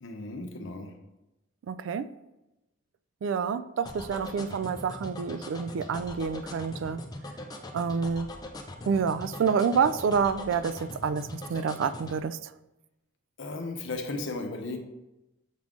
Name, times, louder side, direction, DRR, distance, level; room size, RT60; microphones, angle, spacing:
voice 1, 0.0-0.9 13.4-14.8, left 2 dB, 75° left, 5 dB, 0.8 m, -35 dB
voice 2, 1.7-2.1 3.2-7.0 7.7-8.3 8.9-12.4, right 6 dB, 75° right, 14 dB, 0.3 m, -28 dB
sound 1, 3.9-12.2, left 1 dB, 20° left, 0.5 m, -41 dB
7.4 x 3.7 x 3.7 m, 0.97 s
head